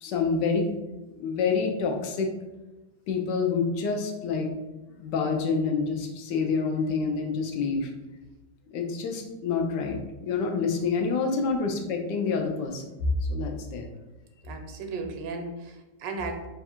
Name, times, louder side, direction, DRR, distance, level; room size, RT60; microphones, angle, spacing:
voice 1, 0.0-0.7 1.2-2.3 3.1-4.5 5.0-7.9 8.7-12.9 13.3-13.9, left 5 dB, 80° left, 2 dB, 1.2 m, -27 dB
voice 2, 14.4-16.5, right 3 dB, 85° right, 4 dB, 1.2 m, -35 dB
3.4 x 2.4 x 4.3 m, 1.1 s
omnidirectional pair, 1.9 m